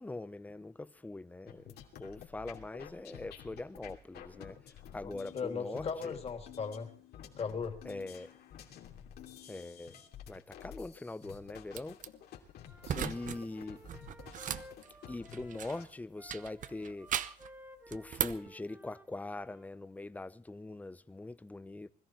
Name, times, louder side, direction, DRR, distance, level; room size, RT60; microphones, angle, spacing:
voice 1, 0.0-6.2 7.8-8.3 9.5-10.0 10.3-12.0 13.0-13.8 15.1-17.1 17.9-21.9, left 2 dB, 10° left, 0.7 m, -42 dB
sound 1, 1.5-15.8, left 9 dB, 70° left, 2.9 m, -52 dB
voice 2, 5.3-6.9 7.4-7.8 12.8-13.1, left 5 dB, 35° left, 2.8 m, -37 dB
sound 2, 11.7-12.1 12.8-13.4 13.7-15.9 16.3-17.5 17.9-18.5, right 9 dB, 50° right, 0.8 m, -37 dB
Wind instrument woodwind instrument, 12.6-19.7, equal, 10° right, 2.7 m, -56 dB
21.0 x 14.0 x 4.5 m
cardioid pair, 110°, 17 cm